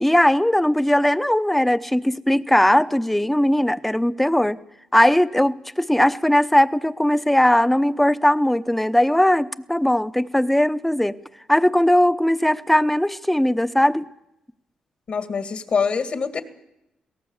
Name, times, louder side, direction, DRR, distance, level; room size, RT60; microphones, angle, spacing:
voice 1, 0.0-4.6 4.9-11.2 11.5-14.0, left 1 dB, 5° left, 13 dB, 0.8 m, -19 dB
voice 2, 15.1-16.4, left 5 dB, 55° left, 8 dB, 2.1 m, -24 dB
22.5 x 18.0 x 7.3 m, 0.85 s
cardioid pair, 85°, 2 cm